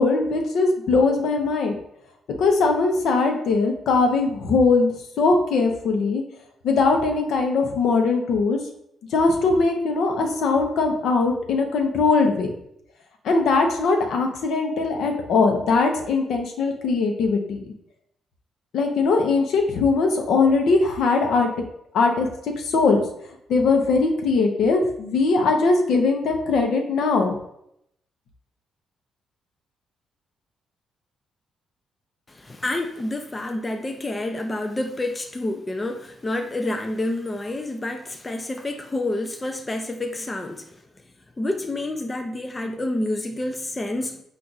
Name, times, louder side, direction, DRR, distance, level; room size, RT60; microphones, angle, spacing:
voice 1, 0.0-1.8 2.4-6.2 6.6-8.6 9.1-12.5 13.2-17.6 18.7-21.5 21.9-22.3 22.6-23.0 23.5-27.4, left 4 dB, 75° left, 0.7 m, -20 dB
voice 2, 32.3-40.7 41.4-44.2, left 1 dB, 20° left, 0.4 m, -28 dB
4.6 x 2.5 x 3.9 m
cardioid pair, 90°, 0 cm